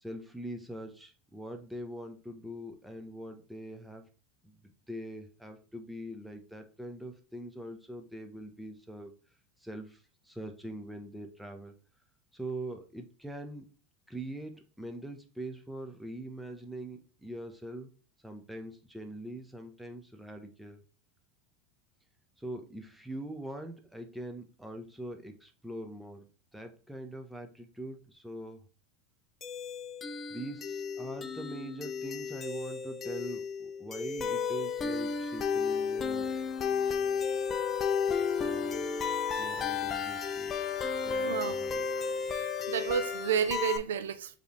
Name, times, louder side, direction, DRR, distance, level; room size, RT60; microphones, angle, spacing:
voice 1, 0.0-4.1 4.4-9.1 9.6-11.7 12.3-13.7 14.1-17.9 18.2-20.8 22.4-26.3 26.5-28.6 30.3-36.3 38.4-38.9 39.4-40.5 41.0-41.9, right 1 dB, 5° right, 1.0 m, -43 dB
sound 1, 29.4-43.8, left 6 dB, 30° left, 0.6 m, -33 dB
voice 2, 41.2-41.6 42.3-44.4, right 8 dB, 80° right, 0.6 m, -31 dB
4.9 x 3.3 x 3.2 m
hypercardioid pair, 95°, 0 cm